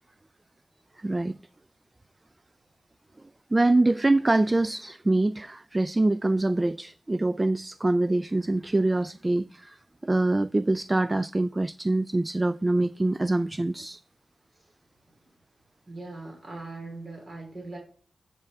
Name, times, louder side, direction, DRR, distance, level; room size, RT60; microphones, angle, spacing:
voice 1, 1.0-1.4 3.5-9.8 10.0-14.0, right 2 dB, 25° right, 0.3 m, -24 dB
voice 2, 15.9-17.8, right 2 dB, 55° right, 3.2 m, -40 dB
9.9 x 6.6 x 3.5 m
cardioid pair, 50°, 0 cm